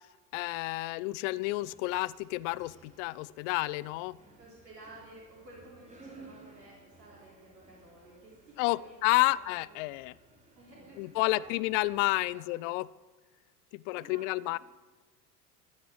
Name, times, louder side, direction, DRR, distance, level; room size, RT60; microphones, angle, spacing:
voice 1, 0.3-4.2 8.6-10.1 11.0-12.9 13.7-14.6, left 20 dB, 50° left, 21 dB, 0.5 m, -30 dB
sound 1, 1.5-12.3, right 3 dB, 15° right, 3.6 m, -58 dB
voice 2, 4.4-9.4 9.7-9.8 10.6-12.1 12.3-12.7 13.9-14.6, right 1 dB, 75° right, -4 dB, 3.7 m, -53 dB
15.5 x 10.5 x 6.1 m, 1.3 s
figure-of-eight pair, 75°, 49 cm